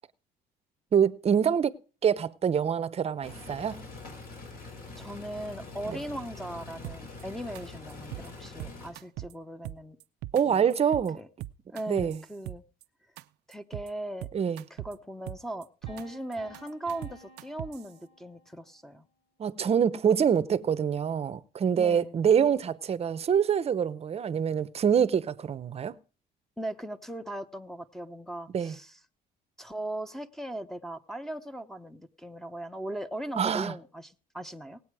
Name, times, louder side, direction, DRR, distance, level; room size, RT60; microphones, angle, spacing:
voice 1, 0.9-1.7 2.0-3.8 10.3-11.2 11.9-12.2 14.3-14.6 19.4-26.0 28.5-28.7 33.4-33.7, right 8 dB, 35° right, 0.8 m, -25 dB
sound 1, 3.2-8.9, left 3 dB, 60° left, 5.8 m, -44 dB
voice 2, 5.0-10.0 10.4-10.7 11.1-11.3 11.7-12.6 13.5-14.3 14.7-19.1 21.8-22.1 26.6-29.0 29.6-34.8, right 1 dB, ahead, 0.9 m, -39 dB
sound 2, 6.8-7.2 7.5-7.6 7.9-8.3 8.6-9.3 9.6-10.4 10.7-11.1 11.4-12.8 13.2-13.3 13.5-13.9 14.2-14.9 15.3-16.0 16.3-17.9, right 16 dB, 80° right, 0.5 m, -40 dB
sound 3, 15.9-18.8, left 2 dB, 40° left, 4.3 m, -53 dB
18.5 x 8.4 x 4.8 m
cardioid pair, 110°, 17 cm